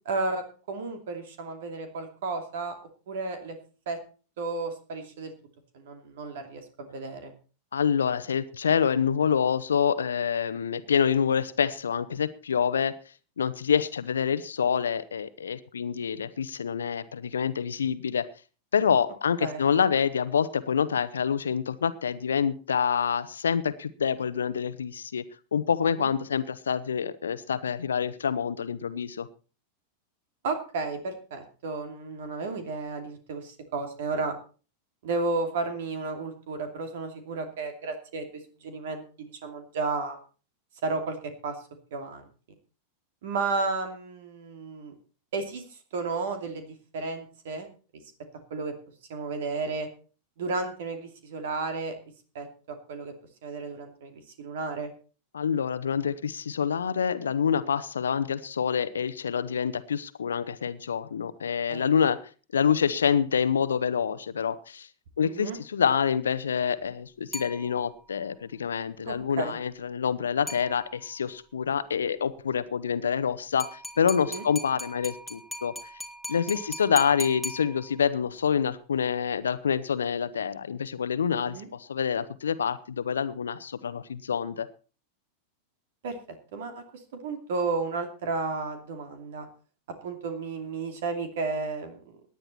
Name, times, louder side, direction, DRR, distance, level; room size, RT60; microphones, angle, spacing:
voice 1, 0.1-2.7 3.1-3.6 3.9-4.0 4.4-5.3 5.7-7.3 19.4-19.6 26.0-26.1 30.4-34.3 35.0-38.3 38.6-40.2 40.8-41.6 41.9-42.2 43.2-44.9 45.3-47.7 48.5-48.7 49.1-49.9 50.4-51.9 52.3-53.1 53.4-54.9 61.7-61.9 65.2-65.6 69.0-69.6 74.3-74.4 81.4-81.7 86.0-86.2 86.5-89.5 90.0-92.2, right 3 dB, 55° right, 7 dB, 2.6 m, -33 dB
voice 2, 7.7-12.9 13.4-18.3 18.7-25.3 25.5-29.3 55.3-62.2 62.5-64.9 65.2-75.7 76.3-84.7, left 7 dB, 70° left, 14 dB, 1.0 m, -27 dB
sound 1, 67.3-68.2 70.5-71.2 73.6-78.2, left 1 dB, ahead, 2.3 m, -39 dB
18.0 x 10.5 x 4.3 m, 0.37 s
figure-of-eight pair, 90°, 0 cm